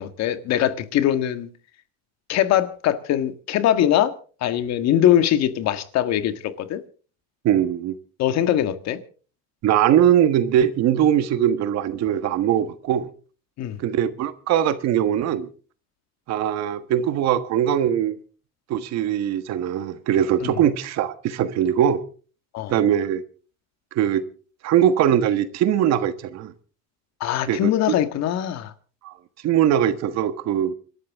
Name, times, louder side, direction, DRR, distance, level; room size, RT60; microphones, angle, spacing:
voice 1, 0.0-1.5 2.3-4.1 4.4-6.8 8.2-9.0 13.6-13.8 20.4-20.6 22.5-22.7 27.2-28.7, left 11 dB, 55° left, 1.7 m, -22 dB
voice 2, 7.4-7.9 9.6-13.1 13.8-15.5 16.3-18.2 18.7-22.0 22.7-23.2 23.9-24.2 24.6-26.5 27.5-27.7 29.0-29.1 29.4-30.7, right 10 dB, 55° right, 1.5 m, -21 dB
26.5 x 13.0 x 3.6 m
cardioid pair, 120°, 31 cm